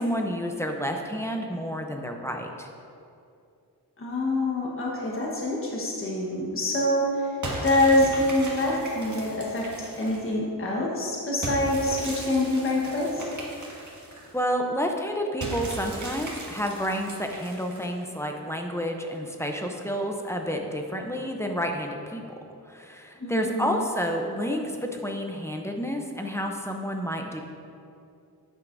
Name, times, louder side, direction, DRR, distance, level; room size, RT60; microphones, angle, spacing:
voice 1, 0.0-2.7 14.3-22.2 22.7-27.4, equal, 5° left, 2 dB, 0.6 m, -30 dB
voice 2, 4.0-7.1 7.6-9.7 10.0-13.3 23.2-23.9, left 1 dB, 35° left, -3 dB, 1.2 m, -25 dB
sound 1, 7.4-10.3 11.4-14.4 15.4-18.0, right 2 dB, 50° right, 1.8 m, -37 dB
10.5 x 9.0 x 2.6 m, 2.5 s
wide cardioid pair, 155°, 38 cm